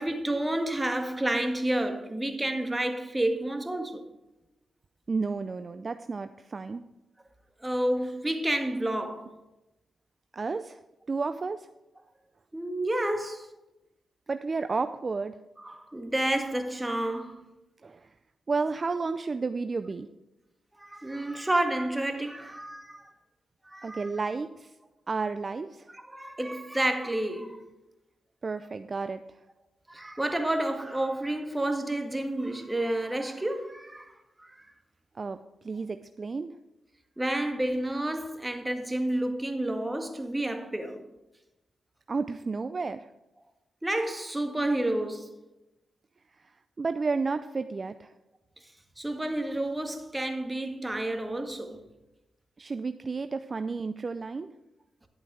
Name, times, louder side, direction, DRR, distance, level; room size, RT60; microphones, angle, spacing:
voice 1, 0.0-4.1 7.6-9.3 12.5-13.5 15.6-17.4 20.8-23.1 23.7-24.1 26.0-27.7 29.9-34.7 37.2-41.1 43.8-45.4 49.0-51.8, right 1 dB, 15° right, 1.8 m, -30 dB
voice 2, 5.1-6.8 10.3-10.8 11.1-11.7 14.3-15.4 17.8-18.1 18.5-20.1 23.8-24.7 25.1-25.9 28.4-29.2 35.1-35.4 35.6-36.6 42.1-43.1 46.4-48.1 52.6-54.5, right 4 dB, 45° right, 0.5 m, -32 dB
11.0 x 8.0 x 4.9 m
supercardioid pair, 45°, 0 cm